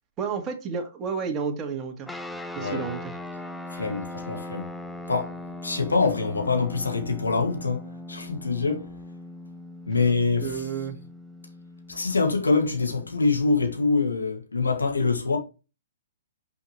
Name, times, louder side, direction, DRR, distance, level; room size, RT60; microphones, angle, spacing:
voice 1, 0.2-2.1 2.6-3.0 10.4-11.0, right 6 dB, 25° right, 1.8 m, -31 dB
sound 1, 2.1-13.9, left 1 dB, 5° left, 0.7 m, -40 dB
voice 2, 2.6-2.9 3.7-4.7 5.1-8.9 9.9-10.7 11.9-15.4, left 4 dB, 85° left, 2.0 m, -25 dB
6.1 x 5.7 x 3.1 m
hypercardioid pair, 125°, 0 cm